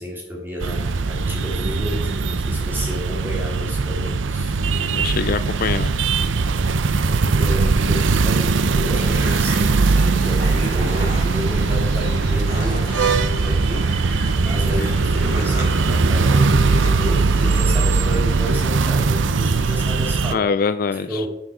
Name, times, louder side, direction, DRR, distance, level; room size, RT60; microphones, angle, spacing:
voice 1, 0.0-4.6 7.0-20.5 20.9-21.3, equal, 10° right, -2 dB, 2.8 m, -31 dB
sound 1, 0.6-20.3, right 4 dB, 90° right, 0.6 m, -20 dB
voice 2, 4.7-5.9 20.3-21.2, left 5 dB, 50° left, 13 dB, 0.3 m, -23 dB
sound 2, 8.9-17.6, right 1 dB, 55° right, 2.7 m, -34 dB
sound 3, 10.4-16.9, equal, 35° right, 4.7 m, -37 dB
9.9 x 7.7 x 4.9 m, 0.80 s
head